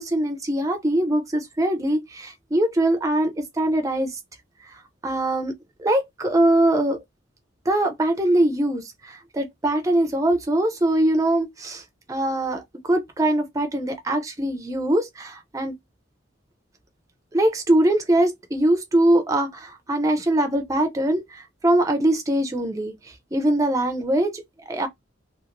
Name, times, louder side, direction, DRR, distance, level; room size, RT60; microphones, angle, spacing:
voice 1, 0.0-4.2 5.0-5.5 5.8-7.0 7.7-11.8 12.1-15.7 17.3-22.9 23.3-24.9, right 1 dB, 15° right, 0.4 m, -22 dB
2.9 x 2.4 x 2.4 m
head